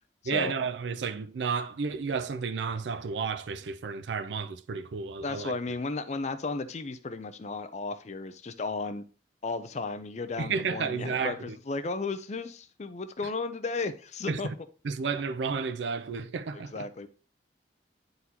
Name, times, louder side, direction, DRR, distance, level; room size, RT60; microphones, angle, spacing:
voice 1, 0.3-5.5 10.4-11.6 14.3-14.4 14.8-16.9, right 5 dB, 80° right, 0.4 m, -32 dB
voice 2, 5.2-9.1 9.4-14.5 16.5-17.1, left 3 dB, 40° left, 0.5 m, -34 dB
9.3 x 4.0 x 2.8 m
head